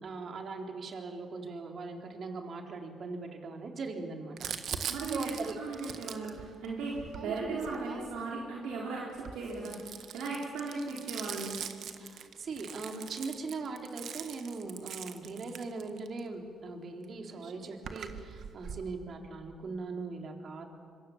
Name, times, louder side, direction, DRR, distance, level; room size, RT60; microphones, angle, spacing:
voice 1, 0.0-4.4 4.7-5.6 12.0-20.6, right 3 dB, 50° right, 3 dB, 3.8 m, -40 dB
Crumpling crinkling, 4.4-8.4 9.1-16.2 17.0-17.1 17.3-18.9, right 8 dB, 70° right, 1.6 m, -42 dB
voice 2, 4.9-11.6, right 3 dB, 90° right, -3 dB, 3.9 m, -37 dB
26.0 x 24.0 x 7.3 m, 2.2 s
cardioid pair, 90°, 0 cm